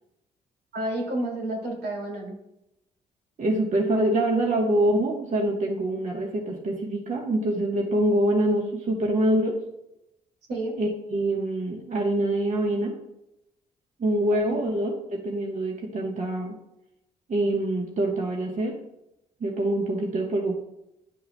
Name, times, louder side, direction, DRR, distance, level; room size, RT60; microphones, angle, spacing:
voice 1, 0.7-2.4 10.5-10.8 14.5-14.6, right 1 dB, 75° right, -1 dB, 2.4 m, -30 dB
voice 2, 3.4-9.6 10.8-12.9 14.0-16.5 17.3-18.7 19.4-20.6, right 1 dB, 45° right, 0 dB, 1.1 m, -25 dB
10.5 x 5.5 x 2.2 m, 0.85 s
cardioid pair, 70°, 17 cm